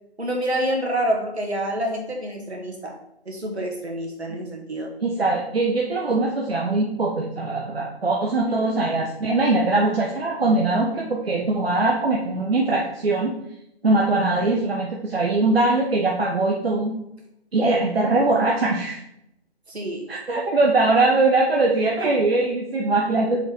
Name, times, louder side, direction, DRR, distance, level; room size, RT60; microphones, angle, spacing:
voice 1, 0.2-2.9 3.3-4.9 8.4-8.7 19.7-20.1 22.0-22.1, right 1 dB, 80° right, 1 dB, 2.2 m, -27 dB
voice 2, 5.0-13.3 13.8-17.0 17.5-19.0 20.1-23.4, right 2 dB, 65° right, -1 dB, 1.2 m, -21 dB
7.0 x 4.5 x 4.0 m, 0.79 s
figure-of-eight pair, 150°, 32 cm